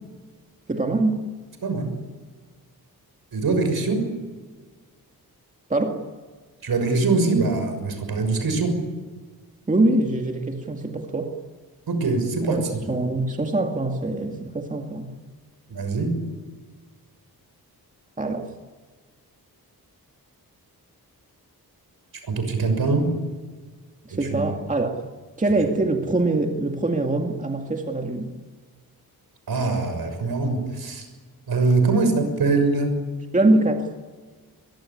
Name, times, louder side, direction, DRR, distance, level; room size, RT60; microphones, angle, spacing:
voice 1, 0.7-1.2 5.7-6.0 9.7-11.3 12.4-15.1 18.2-18.5 24.0-25.0 25.4-28.3 33.3-33.9, right 2 dB, 20° right, 3 dB, 2.2 m, -23 dB
voice 2, 1.6-2.0 3.3-4.1 6.6-8.8 11.9-12.9 15.7-16.2 22.3-23.1 24.1-24.4 29.5-31.1 31.5-32.9, right 3 dB, 70° right, 7 dB, 6.5 m, -23 dB
23.0 x 22.0 x 9.9 m, 1.4 s
wide cardioid pair, 130°, 37 cm